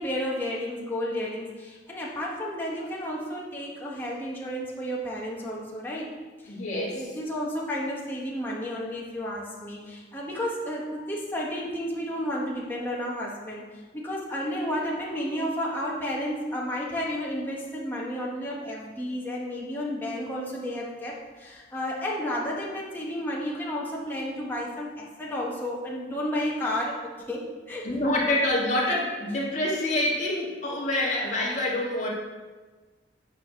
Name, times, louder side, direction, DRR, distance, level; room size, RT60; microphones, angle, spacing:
voice 1, 0.0-6.1 6.4-6.5 6.9-13.6 13.9-27.9, equal, 10° left, -4 dB, 1.3 m, -32 dB
voice 2, 6.5-7.0 27.8-32.1, left 1 dB, 40° left, -4 dB, 1.9 m, -26 dB
9.2 x 4.9 x 5.7 m, 1.3 s
head